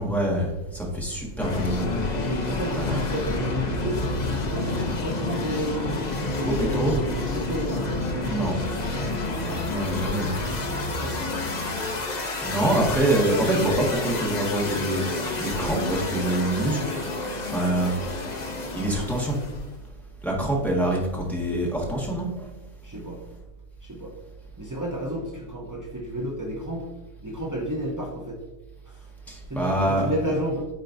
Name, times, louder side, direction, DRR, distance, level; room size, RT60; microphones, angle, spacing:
voice 1, 0.0-2.0 2.7-3.1 6.4-7.0 8.3-8.6 9.7-10.3 12.4-16.9 17.4-18.0 18.7-19.4 20.2-22.3 29.3-30.3, right 1 dB, ahead, -4 dB, 1.4 m, -25 dB
sound 1, 1.4-19.7, left 2 dB, 40° left, 0.6 m, -29 dB
voice 2, 2.1-6.0 6.4-8.6 9.4-9.7 10.6-11.7 22.8-23.2 23.8-24.1 24.6-26.9 27.2-28.4 28.8-29.1 29.5-30.7, right 1 dB, 25° right, -2 dB, 0.3 m, -32 dB
9.8 x 4.4 x 2.6 m, 1.1 s
omnidirectional pair, 1.7 m